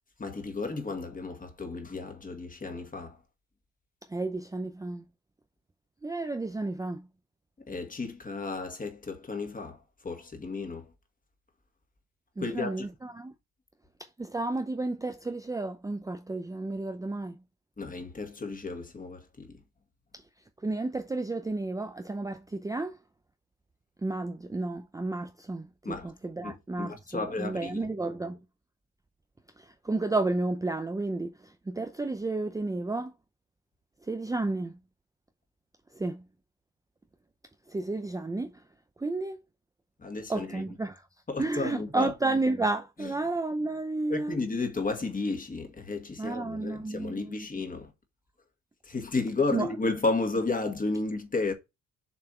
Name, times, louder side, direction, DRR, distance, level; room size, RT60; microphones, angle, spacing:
voice 1, 0.2-3.2 7.7-10.9 12.4-12.9 17.8-19.6 25.8-26.1 26.4-27.9 40.0-40.6 41.3-42.1 43.0-43.1 44.1-47.9 48.8-51.5, left 3 dB, 25° left, 2.0 m, -33 dB
voice 2, 4.1-5.0 6.0-7.1 12.4-13.3 14.0-17.3 20.1-20.2 20.6-23.0 24.0-28.4 29.6-33.1 34.0-34.8 35.9-36.2 37.7-38.6 39.0-39.4 40.3-41.1 41.4-44.4 46.2-47.5 49.5-49.7, right 2 dB, 10° right, 0.6 m, -32 dB
7.1 x 3.4 x 4.3 m
cardioid pair, 90°, 30 cm